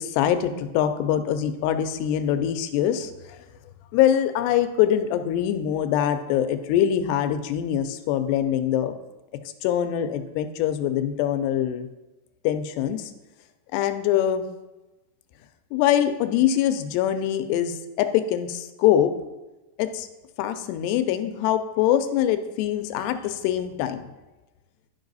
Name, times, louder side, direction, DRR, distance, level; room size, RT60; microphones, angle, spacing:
voice 1, 0.0-3.1 3.9-8.9 9.6-11.9 12.4-13.1 13.7-14.5 15.7-19.1 19.8-20.1 20.4-24.0, left 10 dB, 90° left, 9 dB, 2.7 m, -23 dB
12.0 x 5.3 x 4.0 m, 1.1 s
omnidirectional pair, 4.7 m